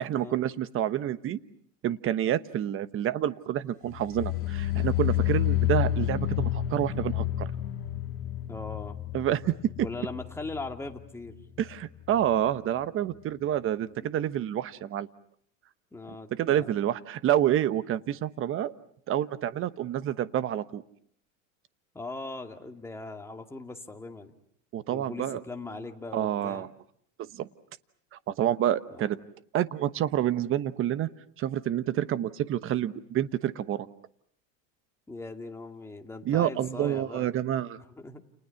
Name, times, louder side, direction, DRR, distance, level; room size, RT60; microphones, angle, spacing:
voice 1, 0.0-1.4 1.8-7.5 9.1-9.9 11.6-15.1 16.3-18.7 19.1-20.8 24.7-25.4 26.1-26.7 27.3-27.5 28.1-29.2 29.5-31.1 31.4-33.9 36.2-37.8, right 11 dB, 30° right, 13 dB, 1.1 m, -28 dB
sound 1, 3.9-11.0 11.3-11.7 12.1-12.2, left 13 dB, 30° left, 2.1 m, -30 dB
voice 2, 8.5-9.0 9.8-11.4 14.0-14.1 15.9-16.7 21.9-24.3 24.9-26.7 28.9-29.1 35.1-37.3 37.9-38.2, left 3 dB, 5° left, 3 dB, 2.2 m, -40 dB
30.0 x 30.0 x 5.9 m, 0.63 s
supercardioid pair, 140°, 41 cm